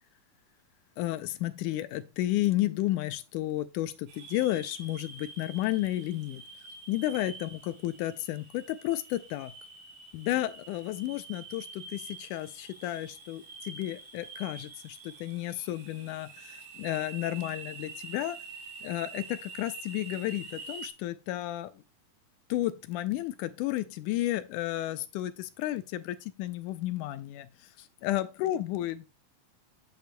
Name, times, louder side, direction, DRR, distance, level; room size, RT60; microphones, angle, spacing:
voice 1, 1.0-6.4 6.9-9.5 10.1-18.4 18.8-21.8 22.5-29.1, left 15 dB, 80° left, 1.9 m, -32 dB
sound 1, 4.1-20.9, right 4 dB, 80° right, 3.6 m, -46 dB
8.6 x 8.1 x 2.2 m
omnidirectional pair, 3.9 m